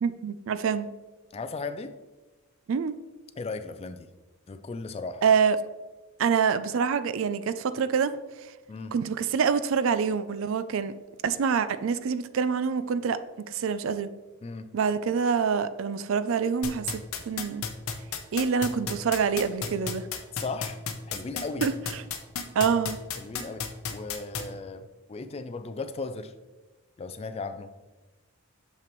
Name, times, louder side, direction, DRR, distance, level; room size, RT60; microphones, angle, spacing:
voice 1, 0.0-0.9 2.7-2.9 5.2-5.6 6.2-8.1 8.9-10.9 11.2-13.2 13.5-14.1 14.7-17.6 18.3-20.1 21.6-22.0 22.6-23.0, right 6 dB, 60° right, 13 dB, 0.3 m, -26 dB
voice 2, 1.3-2.0 3.4-4.1 4.5-5.2 8.7-8.9 14.4-14.7 20.3-20.8 21.1-21.7 23.2-26.3 27.0-27.7, left 3 dB, 25° left, 9 dB, 0.3 m, -36 dB
sound 1, 16.6-24.4, left 7 dB, 70° left, 0.7 m, -31 dB
6.7 x 5.8 x 3.0 m, 1.1 s
head